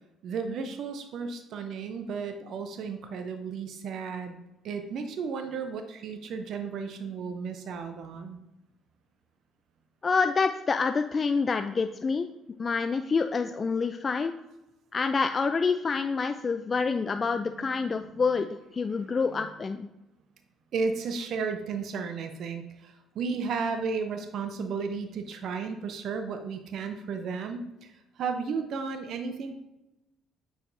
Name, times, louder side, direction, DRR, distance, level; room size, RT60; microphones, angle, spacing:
voice 1, 0.2-4.4 4.6-8.4 17.6-17.9 19.3-19.6 20.7-29.5, right 5 dB, 60° right, 7 dB, 0.5 m, -34 dB
voice 2, 10.0-12.3 12.6-14.3 14.9-18.5 18.7-19.9, left 4 dB, 35° left, 8 dB, 0.3 m, -27 dB
7.8 x 4.9 x 2.6 m, 0.96 s
hypercardioid pair, 55°, 0 cm